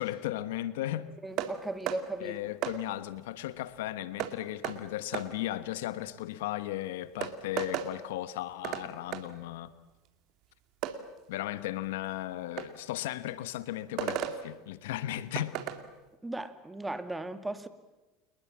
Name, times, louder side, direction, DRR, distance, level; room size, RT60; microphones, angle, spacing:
voice 1, 0.0-1.1 2.2-9.7 11.3-15.6, left 14 dB, 75° left, 1.2 m, -36 dB
voice 2, 1.2-2.5 16.2-17.7, right 2 dB, 10° right, 2.3 m, -37 dB
sound 1, 1.4-1.5 1.9-2.0 2.6-2.8 4.2-4.3 4.6-4.8 5.1-5.3 6.6-6.7 7.2-7.9 8.6-8.9 9.1-9.2 10.8-11.0 12.6-12.7 14.0-14.4 15.3-15.8, right 11 dB, 55° right, 2.3 m, -33 dB
29.0 x 21.0 x 7.4 m
hypercardioid pair, 85°, 0 cm